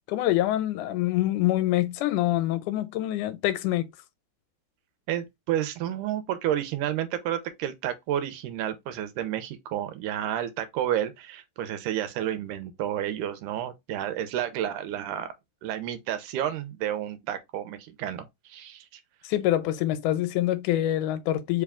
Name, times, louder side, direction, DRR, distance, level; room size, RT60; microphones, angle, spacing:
voice 1, 0.1-3.9 19.2-21.6, left 14 dB, 80° left, 2.0 m, -25 dB
voice 2, 5.1-15.3 15.6-18.9, right 11 dB, 85° right, 2.1 m, -31 dB
4.8 x 2.3 x 3.4 m
omnidirectional pair, 3.6 m